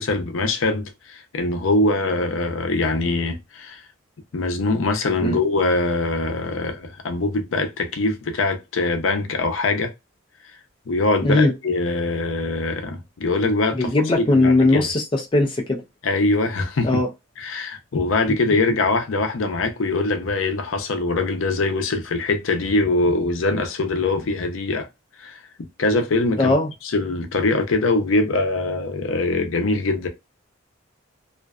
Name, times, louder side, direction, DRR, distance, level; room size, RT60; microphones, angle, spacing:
voice 1, 0.0-3.8 4.3-9.9 10.9-13.9 14.3-14.9 16.0-16.9 17.4-24.9 25.2-25.4 25.8-26.5 26.9-30.1, left 2 dB, 80° left, 0.5 m, -23 dB
voice 2, 11.2-11.5 13.7-15.8 16.8-17.1 26.4-26.7, left 2 dB, 25° left, 0.4 m, -19 dB
2.5 x 2.2 x 2.3 m
head